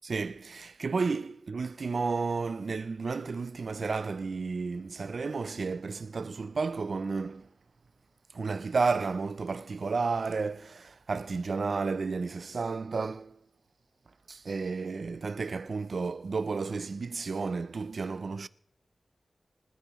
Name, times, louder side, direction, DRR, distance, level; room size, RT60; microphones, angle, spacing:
voice 1, 0.0-7.5 8.3-13.4 14.3-18.5, right 4 dB, 70° right, 0.5 m, -32 dB
25.5 x 9.9 x 3.1 m
wide cardioid pair, 90°, 0 cm